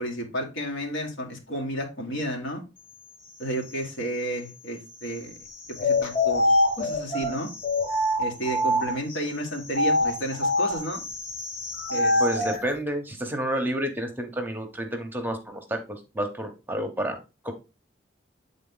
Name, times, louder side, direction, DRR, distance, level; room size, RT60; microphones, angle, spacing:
voice 1, 0.0-2.6 3.4-5.4 5.8-6.4 6.8-7.5 8.2-11.0 11.9-12.5, right 1 dB, 85° left, 1 dB, 1.9 m, -32 dB
sound 1, 5.8-9.2 9.7-12.6, left 1 dB, 45° left, 1.3 m, -24 dB
voice 2, 12.2-17.2 17.4-17.5, equal, 10° right, 5 dB, 0.9 m, -30 dB
8.3 x 3.9 x 3.9 m, 0.29 s
head